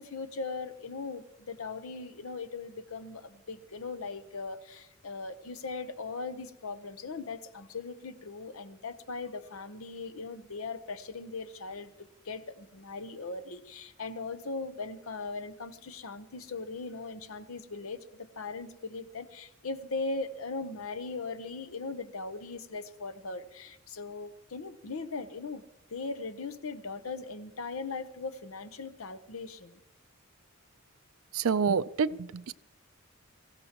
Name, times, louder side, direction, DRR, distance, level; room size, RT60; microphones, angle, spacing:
voice 1, 0.0-25.6 25.9-29.8, left 3 dB, 80° left, 0.9 m, -39 dB
voice 2, 31.3-32.5, right 6 dB, 80° right, 0.5 m, -28 dB
24.5 x 15.5 x 3.0 m
head